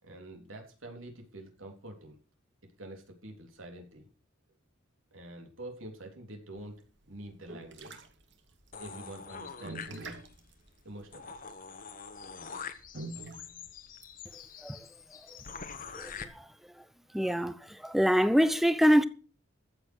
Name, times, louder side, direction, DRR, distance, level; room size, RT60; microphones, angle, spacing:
voice 1, 0.0-2.2 2.8-4.1 5.1-6.8 7.1-8.0 8.8-10.2 10.8-11.3, right 1 dB, 80° right, 3.5 m, -46 dB
sound 1, 6.6-14.3, right 2 dB, 60° right, 2.2 m, -46 dB
sound 2, 8.7-10.4 10.8-10.9 11.1-16.2, left 6 dB, 45° left, 1.4 m, -45 dB
voice 2, 15.9-16.3 17.1-17.5 17.8-19.0, equal, ahead, 0.8 m, -24 dB
14.5 x 7.6 x 6.2 m
head